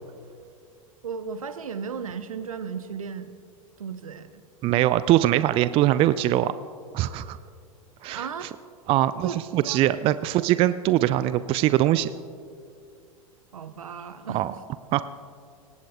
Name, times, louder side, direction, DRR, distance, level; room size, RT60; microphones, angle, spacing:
voice 1, 1.0-3.3 3.8-4.3 8.1-8.5 9.2-9.8 13.5-14.6, right 6 dB, 70° right, 10 dB, 1.0 m, -35 dB
voice 2, 4.6-6.5 6.9-7.4 8.0-8.3 8.9-12.1 14.3-14.5 14.9-15.0, right 14 dB, 30° right, 15 dB, 0.4 m, -22 dB
25.0 x 19.0 x 2.4 m, 2.4 s
figure-of-eight pair, 85°, 18 cm